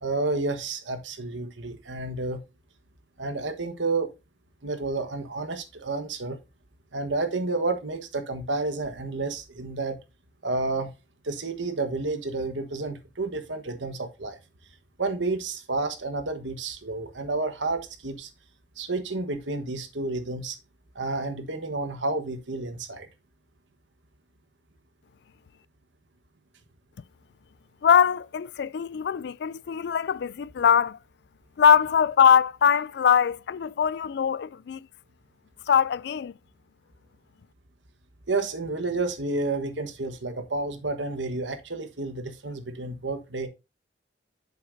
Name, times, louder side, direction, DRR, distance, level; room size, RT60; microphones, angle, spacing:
voice 1, 0.0-2.4 3.2-4.1 4.6-6.4 6.9-10.0 10.4-10.9 11.2-14.4 15.0-18.3 18.8-20.6 20.9-23.1 38.3-43.5, right 3 dB, 85° right, 1.3 m, -30 dB
voice 2, 27.8-31.0 31.6-34.9 35.7-36.3, left 7 dB, 65° left, 0.3 m, -22 dB
8.2 x 6.7 x 2.6 m
head